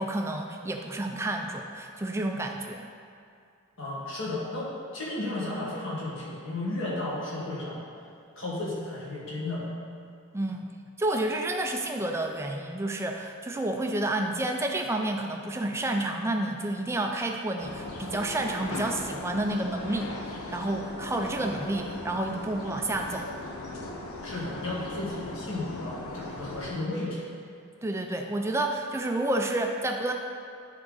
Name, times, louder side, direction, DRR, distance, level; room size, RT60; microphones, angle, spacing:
voice 1, 0.0-2.9 10.3-10.7 11.0-23.3 27.8-30.1, right 1 dB, 10° right, 3 dB, 0.3 m, -30 dB
voice 2, 3.8-7.8 8.4-9.7 24.2-27.2, left 2 dB, 60° left, -6 dB, 1.7 m, -33 dB
sound 1, 17.6-26.7, left 2 dB, 80° left, 0.8 m, -38 dB
9.7 x 3.8 x 3.9 m, 2.4 s
head